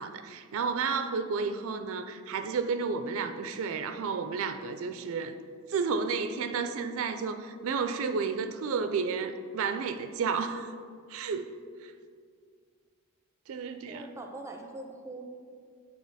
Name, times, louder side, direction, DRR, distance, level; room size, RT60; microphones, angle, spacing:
voice 1, 0.0-5.4 5.7-10.7 11.1-11.5 11.8-11.9 13.5-14.1, right 5 dB, 65° right, 9 dB, 0.4 m, -32 dB
voice 2, 13.9-15.2, right 2 dB, 15° right, 3 dB, 0.5 m, -42 dB
8.4 x 3.8 x 4.0 m, 2.1 s
head